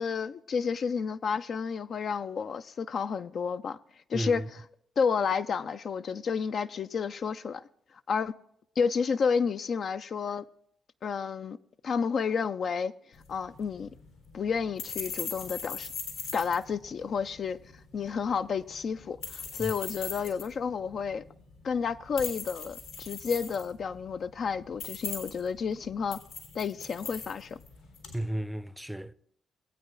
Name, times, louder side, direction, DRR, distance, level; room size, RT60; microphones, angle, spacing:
voice 1, 0.0-3.8 4.1-4.6 5.0-7.6 8.1-8.3 8.8-10.5 11.0-11.6 11.8-12.9 13.3-13.9 14.3-15.9 16.3-17.6 17.9-21.2 21.6-26.2 26.5-27.6, left 6 dB, 55° left, 0.3 m, -31 dB
voice 2, 4.1-4.5 19.6-19.7 28.1-29.1, right 1 dB, 5° right, 0.5 m, -33 dB
sound 1, 13.1-28.2, left 5 dB, 85° left, 2.8 m, -41 dB
18.5 x 8.6 x 2.4 m
hypercardioid pair, 45°, 0 cm